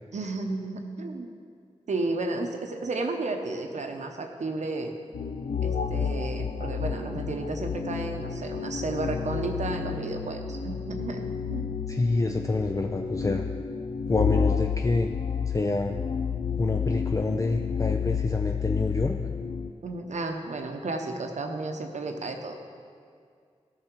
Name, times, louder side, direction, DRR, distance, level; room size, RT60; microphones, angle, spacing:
voice 1, 0.1-1.3 1.9-5.0 5.6-11.7 19.8-22.6, right 2 dB, 85° right, 4 dB, 0.8 m, -32 dB
sound 1, 5.1-19.7, left 6 dB, 80° left, 0.4 m, -31 dB
voice 2, 11.9-13.4 14.1-15.2 15.5-16.0 16.6-19.2, left 2 dB, 30° left, 4 dB, 0.4 m, -27 dB
14.0 x 5.8 x 4.5 m, 2.2 s
wide cardioid pair, 75°, 12 cm